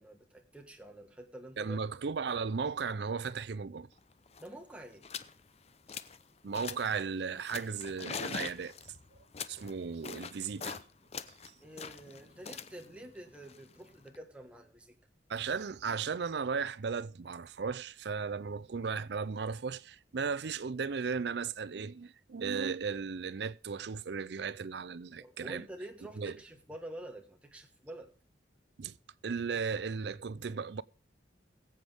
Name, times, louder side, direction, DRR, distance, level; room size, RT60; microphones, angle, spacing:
voice 1, 0.0-1.8 4.4-5.1 11.6-15.0 25.2-28.1, right 1 dB, 5° right, 1.5 m, -48 dB
voice 2, 1.6-3.9 6.4-8.7 9.5-10.8 15.3-25.7 26.2-26.4 28.8-29.0 29.2-30.8, right 5 dB, 65° right, 0.5 m, -36 dB
sound 1, 4.0-4.1 4.3-4.5 5.0-5.3 5.7-6.2 6.5-7.0 7.5-10.8 11.1-14.2, left 6 dB, 35° left, 0.6 m, -43 dB
22.0 x 7.9 x 3.5 m
head